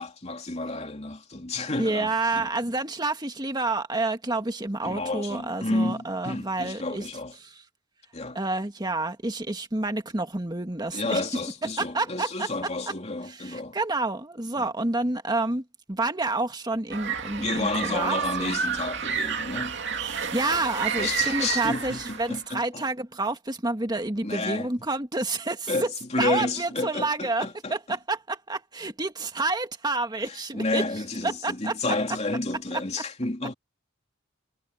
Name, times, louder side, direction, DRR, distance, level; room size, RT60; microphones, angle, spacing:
voice 1, 0.0-2.5 4.8-7.3 8.1-8.4 10.9-13.8 14.6-14.7 17.4-19.8 21.0-22.8 24.2-24.9 25.7-27.7 30.2-33.5, left 2 dB, 35° left, 3.0 m, -31 dB
voice 2, 1.8-7.0 7.4-7.5 8.4-11.2 11.8-12.5 13.3-18.6 20.0-25.9 26.2-30.8 31.2-31.7, right 2 dB, 20° right, 1.8 m, -29 dB
sound 1, 16.9-22.4, right 7 dB, 60° right, 2.6 m, -30 dB
head